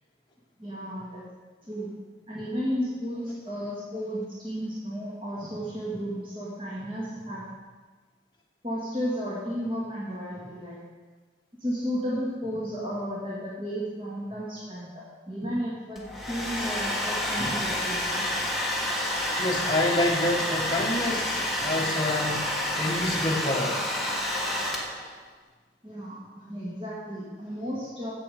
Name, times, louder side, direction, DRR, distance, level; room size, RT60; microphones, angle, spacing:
voice 1, 0.6-1.2 1.6-1.9 2.3-7.4 8.6-10.8 11.6-18.4 25.8-28.1, equal, 30° right, -7 dB, 2.1 m, -33 dB
Domestic sounds home sounds, 16.0-25.2, left 1 dB, ahead, 1.4 m, -29 dB
voice 2, 19.4-23.8, left 1 dB, 25° left, -1 dB, 1.5 m, -28 dB
14.5 x 7.4 x 5.1 m, 1.4 s
head